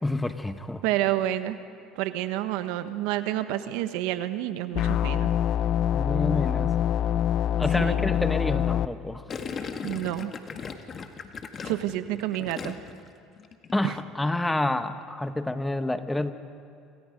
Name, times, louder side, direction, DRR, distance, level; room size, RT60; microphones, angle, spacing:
voice 1, 0.0-0.8 5.9-6.7 7.6-9.2 13.7-16.3, left 2 dB, 10° left, 9 dB, 1.5 m, -28 dB
voice 2, 0.8-1.6 2.0-5.3 7.8-8.0 9.6-10.3 11.6-12.8 13.8-13.9, right 14 dB, 75° right, 10 dB, 1.3 m, -29 dB
sound 1, 4.7-8.9, left 10 dB, 55° left, 0.7 m, -25 dB
Gurgling, 9.3-13.1 13.4-13.7, left 5 dB, 40° left, 1.9 m, -37 dB
28.0 x 27.0 x 5.3 m, 2.5 s
supercardioid pair, 90°, 0 cm